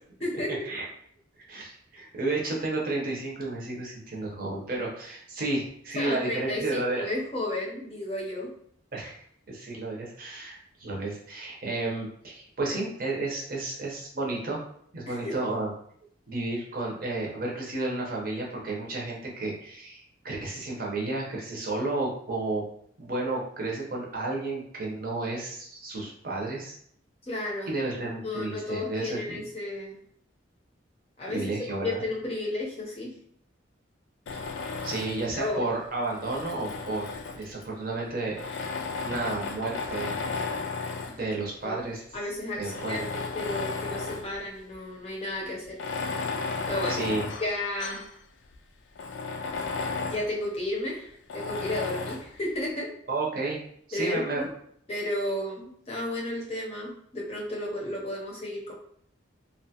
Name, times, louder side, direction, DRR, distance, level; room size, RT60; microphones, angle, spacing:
voice 1, 1.5-7.0 8.9-14.6 14.9-15.7 16.3-22.6 23.0-26.8 27.6-29.4 31.3-32.0 34.3-34.4 34.8-38.7 39.0-40.3 41.0-42.0 42.6-43.1 46.9-47.3 53.1-53.6 53.9-54.5, right 2 dB, 45° right, -2 dB, 0.7 m, -32 dB
voice 2, 6.0-8.5 15.1-15.3 27.3-27.7 28.2-30.0 31.2-33.1 35.4-35.7 41.6-41.8 42.1-43.0 43.3-45.8 46.7-47.0 47.4-48.0 50.0-52.9 53.9-54.5 54.9-58.7, left 1 dB, 30° left, -3 dB, 0.6 m, -33 dB
Tools, 34.3-35.4 36.0-37.6 38.3-41.3 42.0-42.1 42.6-44.4 44.7-44.8 45.7-48.1 48.5-48.6 49.0-50.3 51.3-52.3, left 4 dB, 70° left, 0.3 m, -34 dB
2.7 x 2.2 x 2.8 m, 0.65 s
head